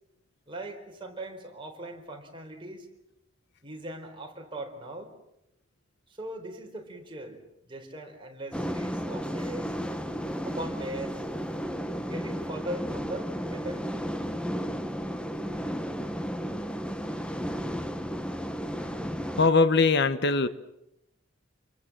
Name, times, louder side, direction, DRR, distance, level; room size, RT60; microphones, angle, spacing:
voice 1, 0.5-2.9 3.6-5.1 6.1-9.8 10.4-11.2 12.0-13.9, right 1 dB, 25° right, 2 dB, 4.4 m, -40 dB
sound 1, 8.5-19.5, equal, 5° left, 1.2 m, -33 dB
voice 2, 19.4-20.5, left 4 dB, 60° left, 13 dB, 1.1 m, -21 dB
28.0 x 22.5 x 7.6 m, 0.84 s
head